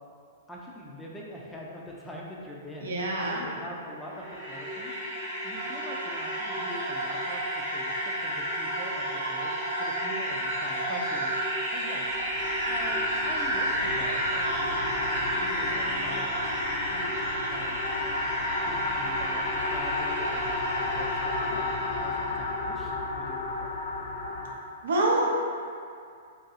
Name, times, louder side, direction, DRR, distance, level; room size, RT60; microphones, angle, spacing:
voice 1, 0.5-3.0 3.3-5.0 5.4-12.4 12.7-16.3 16.7-17.2 17.5-17.9 18.7-23.8, left 1 dB, 5° left, -4 dB, 0.4 m, -43 dB
voice 2, 2.8-3.5 24.8-25.3, right 2 dB, 75° right, -3 dB, 0.6 m, -26 dB
sound 1, 3.9-22.6, equal, 25° right, 0.9 m, -31 dB
sound 2, 12.0-24.6, left 3 dB, 70° left, 0.4 m, -33 dB
2.6 x 2.3 x 3.9 m, 2.3 s
hypercardioid pair, 145°, 0 cm